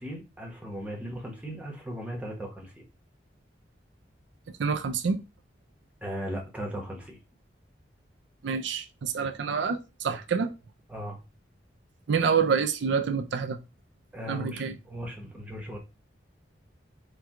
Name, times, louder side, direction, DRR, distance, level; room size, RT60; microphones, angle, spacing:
voice 1, 0.0-2.8 6.0-7.2 9.2-9.3 10.9-11.2 14.1-15.8, equal, 5° right, 0.9 m, -37 dB
voice 2, 4.6-5.2 8.4-10.5 12.1-13.6 14.3-14.8, right 6 dB, 75° right, 0.4 m, -27 dB
4.4 x 2.3 x 3.5 m
head